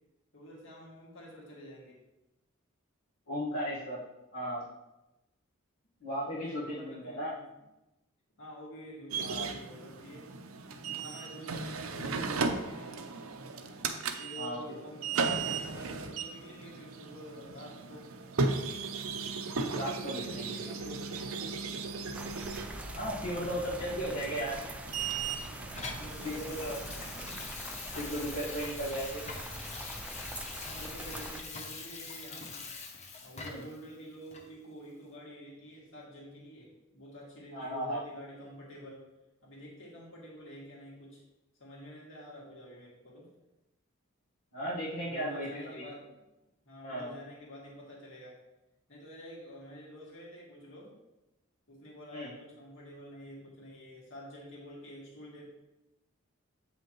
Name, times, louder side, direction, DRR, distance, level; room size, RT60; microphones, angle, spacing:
voice 1, 0.3-2.0 6.2-7.5 8.4-10.3 10.8-13.0 14.2-15.1 15.4-18.1 20.0-21.3 23.3-24.4 25.7-27.1 30.6-32.6 33.2-39.1 39.4-41.2 41.6-43.3 45.0-46.2 46.6-48.4 48.9-50.9 51.7-55.5, equal, 60° left, -4 dB, 2.2 m, -48 dB
voice 2, 3.3-4.0 4.3-4.7 6.0-7.3 9.2-9.5 14.4-14.6 19.7-20.5 22.9-24.6 26.2-26.8 28.0-29.2 33.4-33.6 37.5-38.0 44.5-45.5 45.8-45.9 46.8-47.1 52.1-52.3, equal, 80° left, -8 dB, 1.6 m, -35 dB
sound 1, 9.1-27.5, right 4 dB, 85° right, 0.6 m, -36 dB
sound 2, 22.1-31.4, right 1 dB, 5° right, 0.4 m, -43 dB
Water tap faucet / Sink (filling or washing), 24.5-33.8 34.3-34.5, left 4 dB, 30° left, 0.8 m, -44 dB
8.1 x 5.6 x 3.1 m, 0.97 s
head